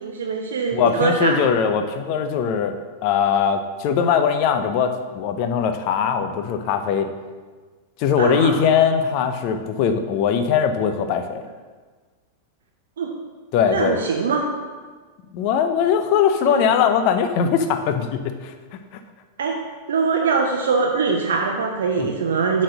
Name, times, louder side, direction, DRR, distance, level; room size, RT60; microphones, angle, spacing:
voice 1, 0.0-1.4 8.2-8.6 13.0-13.1 13.7-14.5 16.5-16.6 19.4-19.6 19.9-22.6, right 5 dB, 65° right, 1 dB, 0.7 m, -22 dB
voice 2, 0.7-7.1 8.0-11.4 13.5-14.0 15.3-18.5 18.9-19.0 22.0-22.1, left 7 dB, 45° left, 8 dB, 0.6 m, -20 dB
7.6 x 4.2 x 6.2 m, 1.4 s
figure-of-eight pair, 90°, 0 cm